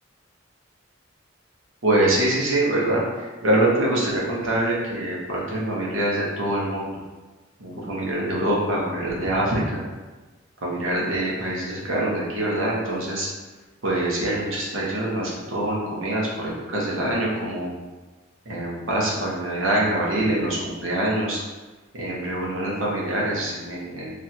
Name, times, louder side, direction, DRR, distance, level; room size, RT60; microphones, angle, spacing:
voice 1, 1.8-7.0 7.6-9.8 10.6-13.3 13.8-17.7 18.4-21.4 21.9-24.1, right 1 dB, 70° right, -4 dB, 1.1 m, -24 dB
3.1 x 2.6 x 4.2 m, 1.2 s
head